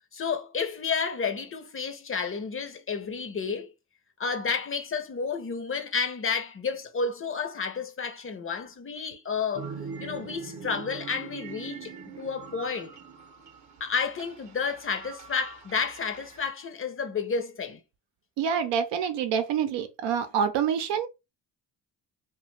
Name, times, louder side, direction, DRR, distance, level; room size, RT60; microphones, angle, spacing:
voice 1, 0.1-3.7 4.2-9.7 10.0-13.0 13.8-17.8, left 5 dB, 30° left, 0.6 m, -31 dB
sound 1, 9.5-16.5, right 5 dB, 40° right, 0.8 m, -42 dB
voice 2, 18.4-21.1, right 7 dB, 75° right, 0.6 m, -27 dB
2.4 x 2.3 x 3.1 m
supercardioid pair, 55°, 44 cm